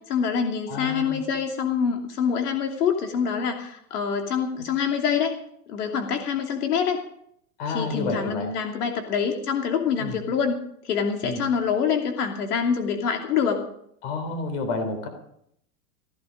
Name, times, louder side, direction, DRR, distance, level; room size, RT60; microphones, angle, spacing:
voice 1, 0.1-5.3 5.7-7.0 7.7-10.5 10.8-13.6, left 7 dB, 90° left, 3 dB, 3.0 m, -25 dB
voice 2, 0.7-1.2 7.6-8.5 10.0-10.2 11.2-11.4 14.0-15.1, left 3 dB, 45° left, 7 dB, 3.6 m, -30 dB
16.0 x 15.0 x 5.2 m, 0.71 s
supercardioid pair, 175°, 45 cm